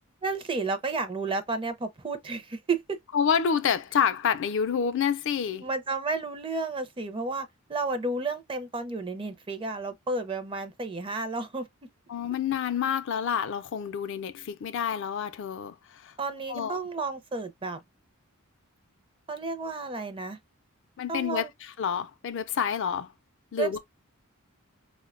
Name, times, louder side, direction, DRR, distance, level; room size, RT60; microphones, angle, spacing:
voice 1, 0.2-3.0 5.6-11.7 16.2-17.8 19.3-20.4 21.1-21.5 23.6-23.8, right 3 dB, 25° right, 0.5 m, -32 dB
voice 2, 3.1-5.7 12.1-16.1 16.5-16.8 21.0-23.1 23.5-23.8, left 7 dB, 55° left, 0.4 m, -28 dB
4.4 x 2.1 x 2.4 m
head